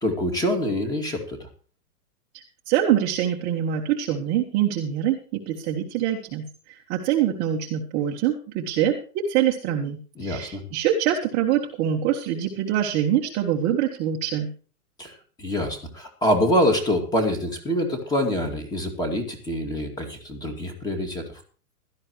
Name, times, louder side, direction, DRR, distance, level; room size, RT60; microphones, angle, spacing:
voice 1, 0.0-1.5 10.2-10.6 15.0-21.2, equal, 10° left, 6 dB, 2.3 m, -25 dB
voice 2, 2.3-14.5, right 10 dB, 20° right, 1 dB, 1.2 m, -25 dB
16.5 x 12.5 x 3.1 m, 0.39 s
hypercardioid pair, 165°, 46 cm